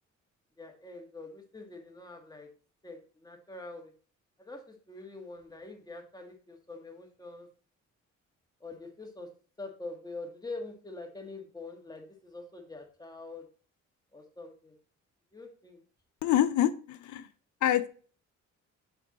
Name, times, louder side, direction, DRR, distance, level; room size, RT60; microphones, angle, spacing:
voice 1, 0.6-2.5 2.8-3.9 4.4-7.5 8.6-9.3 9.6-13.5 14.1-14.8 15.3-15.8, left 2 dB, 15° left, 3 dB, 1.6 m, -44 dB
voice 2, 16.2-17.3 17.6-17.9, left 12 dB, 75° left, 12 dB, 0.7 m, -26 dB
7.0 x 4.6 x 4.1 m, 0.40 s
cardioid pair, 90°, 30 cm